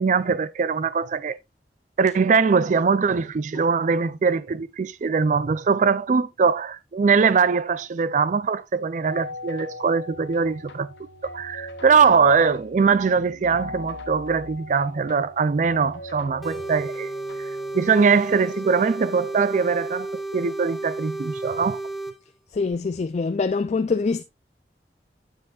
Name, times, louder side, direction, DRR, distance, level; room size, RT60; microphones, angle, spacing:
voice 1, 0.0-1.4 2.0-10.9 11.3-17.1 17.4-17.5 17.7-21.8, right 5 dB, 45° right, 0.4 m, -21 dB
sound 1, 9.0-17.8, left 2 dB, 90° left, 1.5 m, -40 dB
sound 2, 16.4-22.1, right 2 dB, ahead, 1.0 m, -32 dB
voice 2, 22.5-24.2, left 4 dB, 40° left, 0.3 m, -24 dB
9.3 x 7.5 x 2.4 m
head